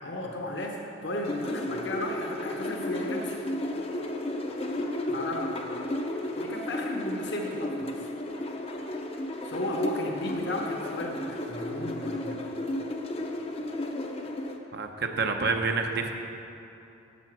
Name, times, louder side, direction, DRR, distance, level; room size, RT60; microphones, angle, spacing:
voice 1, 0.0-3.4 5.1-5.7 6.4-8.1 9.4-12.5, left 1 dB, 55° left, 1 dB, 1.0 m, -34 dB
sound 1, 1.2-14.6, left 1 dB, 30° left, 0.6 m, -33 dB
voice 2, 14.7-16.1, right 4 dB, 50° right, 4 dB, 0.8 m, -28 dB
12.5 x 6.9 x 6.0 m, 2.8 s
head